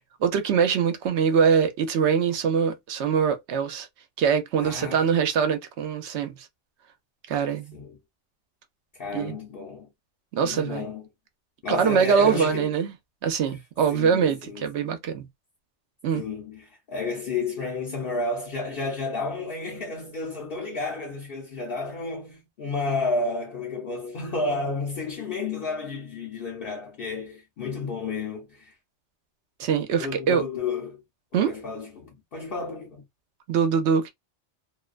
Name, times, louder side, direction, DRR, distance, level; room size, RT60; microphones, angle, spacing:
voice 1, 0.2-3.9 4.2-6.5 7.3-7.7 9.1-9.4 10.3-10.9 11.7-12.9 13.2-15.3 16.0-16.2 29.6-30.4 31.3-31.5 33.5-34.1, right 7 dB, 70° right, 0.9 m, -23 dB
voice 2, 4.6-5.1 7.7-8.0 8.9-9.9 10.4-11.1 11.6-12.7 13.9-14.9 16.1-28.7 30.0-31.0 31.3-33.0, left 3 dB, 55° left, 0.8 m, -31 dB
2.5 x 2.1 x 2.3 m
omnidirectional pair, 1.2 m